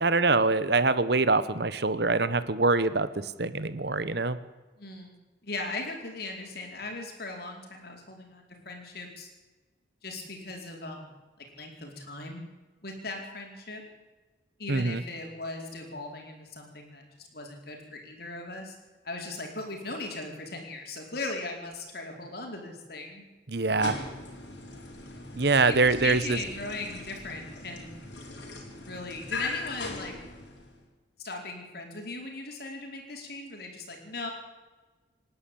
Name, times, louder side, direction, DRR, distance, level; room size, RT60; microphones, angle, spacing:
voice 1, 0.0-3.1 3.4-4.4 14.7-15.0 23.5-24.0 25.3-26.4, right 3 dB, 55° right, 14 dB, 1.1 m, -24 dB
voice 2, 4.8-9.3 10.0-11.2 11.6-12.4 12.8-13.8 14.6-18.7 19.0-23.2 25.7-28.1 28.8-30.1 31.2-34.3, left 2 dB, 50° left, 2 dB, 4.6 m, -38 dB
sound 1, 23.6-30.8, left 3 dB, 70° left, 4.6 m, -40 dB
26.5 x 11.5 x 8.7 m, 1.2 s
head